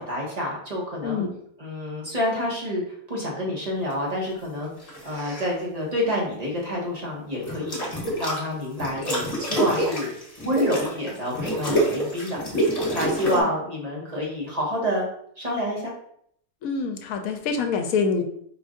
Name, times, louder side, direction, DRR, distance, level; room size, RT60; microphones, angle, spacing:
voice 1, 0.0-1.2 1.6-2.8 3.1-4.7 5.0-7.9 8.2-10.1 10.4-12.4 12.9-15.1 15.4-15.9, equal, 30° right, -3 dB, 1.2 m, -28 dB
sound 1, 4.8-5.5 7.4-8.4 8.8-13.4, right 1 dB, 25° left, 1.4 m, -27 dB
voice 2, 16.6-18.2, left 5 dB, 75° left, 6 dB, 1.0 m, -26 dB
5.0 x 2.5 x 3.7 m, 0.69 s
omnidirectional pair, 1.6 m